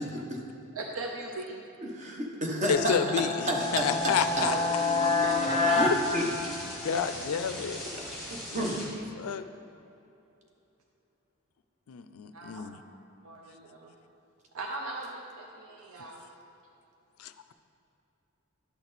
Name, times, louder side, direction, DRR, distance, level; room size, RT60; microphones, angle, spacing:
voice 1, 0.7-1.6 4.4-4.6 5.2-5.8 12.3-12.7 13.2-13.9 14.5-16.3, right 3 dB, 75° right, 0 dB, 0.6 m, -38 dB
voice 2, 1.8-3.0 3.5-4.5 5.7-5.9 6.1-6.2 8.0-8.8, equal, 35° right, 0 dB, 1.0 m, -31 dB
voice 3, 2.7-4.5 6.8-7.9 9.2-9.5 11.9-12.8 17.2-17.5, left 7 dB, 85° left, 11 dB, 0.4 m, -30 dB
sound 1, 2.7-7.1, left 3 dB, 30° left, 0.6 m, -28 dB
sound 2, 3.5-8.9, left 1 dB, ahead, 1.7 m, -40 dB
11.0 x 6.0 x 4.1 m, 2.8 s
head